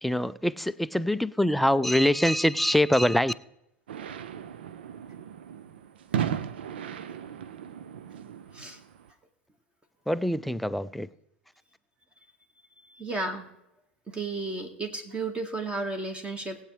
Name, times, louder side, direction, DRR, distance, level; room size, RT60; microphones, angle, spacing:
voice 1, 0.0-3.3 10.1-11.1, left 1 dB, ahead, 14 dB, 0.4 m, -24 dB
sound 1, 3.9-9.1, right 9 dB, 65° right, 0.6 m, -36 dB
voice 2, 13.0-13.5 14.1-16.6, right 3 dB, 15° right, 6 dB, 1.6 m, -33 dB
20.0 x 8.2 x 3.2 m, 0.83 s
figure-of-eight pair, 80°, 6 cm